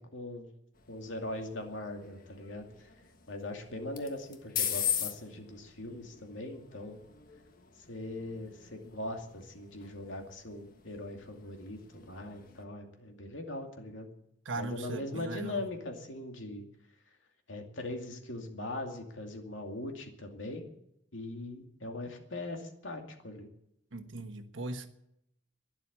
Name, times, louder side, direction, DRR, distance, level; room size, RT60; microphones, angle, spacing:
voice 1, 0.1-0.5 0.9-2.9 3.3-7.0 7.9-14.1 14.6-16.6 17.5-20.6 21.1-23.5, left 2 dB, 80° left, 2.5 m, -40 dB
sound 1, 0.7-12.6, left 9 dB, 50° left, 1.3 m, -41 dB
voice 2, 14.4-15.6 23.9-24.9, right 2 dB, 80° right, 1.4 m, -38 dB
12.0 x 10.5 x 9.9 m
head